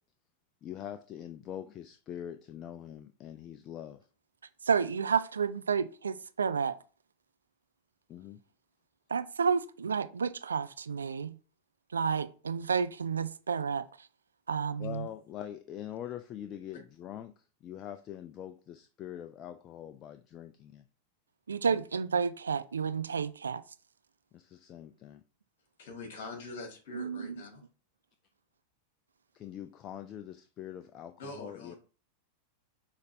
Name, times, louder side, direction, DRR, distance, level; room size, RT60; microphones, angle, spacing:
voice 1, 0.6-4.0 8.1-8.4 14.8-17.3 17.6-20.8 21.7-21.9 24.3-25.2 29.3-31.7, left 10 dB, 30° left, 0.4 m, -43 dB
voice 2, 4.7-6.7 9.1-11.4 11.9-13.8 14.5-15.1 21.5-23.6 26.9-27.2, right 6 dB, 75° right, 0.3 m, -30 dB
voice 3, 25.8-27.6 31.2-31.8, left 3 dB, 55° left, 1.7 m, -43 dB
5.8 x 3.3 x 2.6 m
figure-of-eight pair, 90°, 0 cm